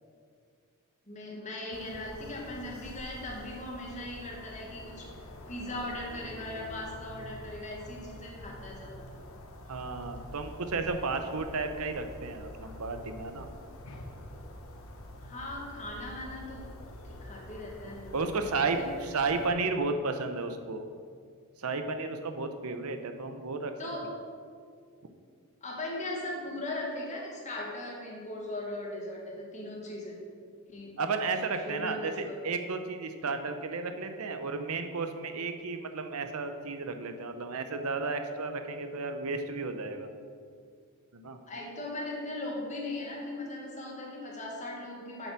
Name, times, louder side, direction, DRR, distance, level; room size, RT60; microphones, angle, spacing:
voice 1, 1.1-5.1 5.5-9.2 15.2-16.7 17.1-18.9 23.8-24.1 25.6-30.2 30.7-31.0 31.6-32.4 41.5-45.3, left 1 dB, 35° left, -2 dB, 1.8 m, -39 dB
sound 1, 1.7-19.5, left 1 dB, 65° left, 1.1 m, -46 dB
voice 2, 9.7-13.5 18.1-18.8 19.1-20.8 21.6-23.7 31.0-40.1 41.1-41.4, right 4 dB, 70° right, 7 dB, 0.7 m, -33 dB
7.2 x 6.7 x 6.0 m, 2.2 s
head